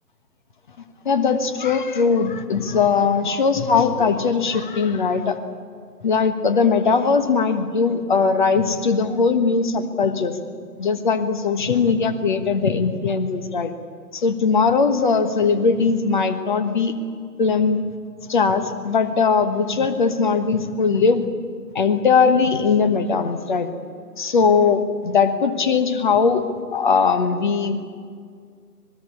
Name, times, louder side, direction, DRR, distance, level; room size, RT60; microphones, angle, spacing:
voice 1, 1.0-5.4 6.0-10.4 10.8-13.7 14.1-16.9 17.4-17.8 18.3-21.3 21.7-23.7 24.2-26.5 26.7-27.9, left 5 dB, 30° left, 10 dB, 1.3 m, -20 dB
26.0 x 20.0 x 8.5 m, 2.1 s
figure-of-eight pair, 150°, 49 cm